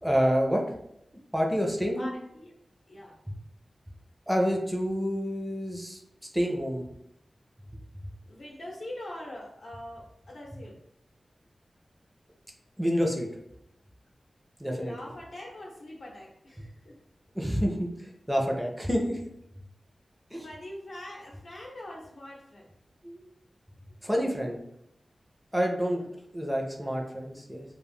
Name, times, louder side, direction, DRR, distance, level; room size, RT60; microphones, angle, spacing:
voice 1, 0.0-0.6 1.3-2.1 4.3-6.0 6.3-6.8 12.8-13.3 14.6-14.9 16.6-16.7 17.3-19.2 20.3-20.4 23.0-23.2 24.0-24.6 25.5-26.0 26.3-27.6, equal, 5° right, 0 dB, 0.4 m, -28 dB
voice 2, 2.0-2.5 2.9-3.2 8.3-10.8 14.7-17.0 20.4-22.7, left 1 dB, 70° left, -3 dB, 0.7 m, -43 dB
2.2 x 2.0 x 3.4 m, 0.78 s
wide cardioid pair, 75°, 0 cm